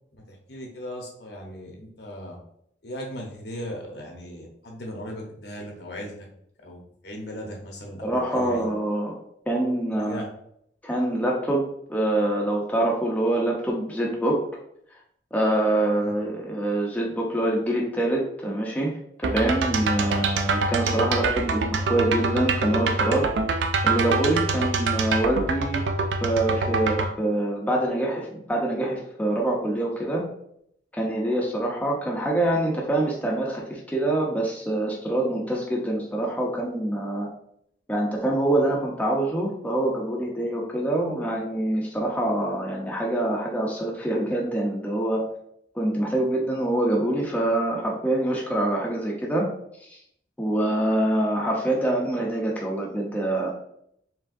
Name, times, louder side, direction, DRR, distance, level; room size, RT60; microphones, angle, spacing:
voice 1, 0.3-2.4 2.8-6.3 6.6-8.7 9.9-10.3 15.9-16.1, equal, 60° left, 0 dB, 1.0 m, -38 dB
voice 2, 8.0-9.1 9.5-10.2 10.8-14.4 15.3-23.3 23.8-25.8 26.2-30.2 30.9-37.3 37.9-45.2 45.7-49.5 49.9-50.0 50.4-53.5, right 1 dB, 10° left, -3 dB, 0.6 m, -25 dB
sound 1, 19.2-27.1, right 3 dB, 75° right, 0.4 m, -25 dB
4.6 x 3.4 x 2.6 m, 0.70 s
head